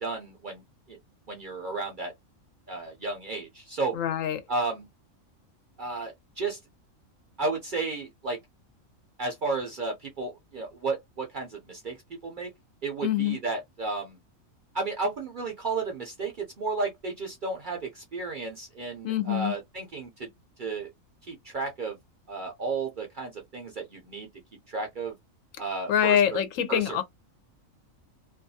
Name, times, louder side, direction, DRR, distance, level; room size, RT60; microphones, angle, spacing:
voice 1, 0.0-0.6 0.9-1.0 1.3-2.1 2.7-4.0 4.5-4.9 5.8-6.6 7.4-8.4 9.2-12.0 12.2-12.5 12.8-14.2 14.7-20.3 20.6-20.9 21.3-22.0 22.3-24.3 24.7-25.1 25.6-26.4 26.7-27.0, right 3 dB, 55° right, 0.6 m, -33 dB
voice 2, 3.9-4.4 13.0-13.4 19.0-19.5 25.9-27.0, left 10 dB, 75° left, 0.9 m, -25 dB
2.6 x 2.3 x 2.6 m
omnidirectional pair, 1.4 m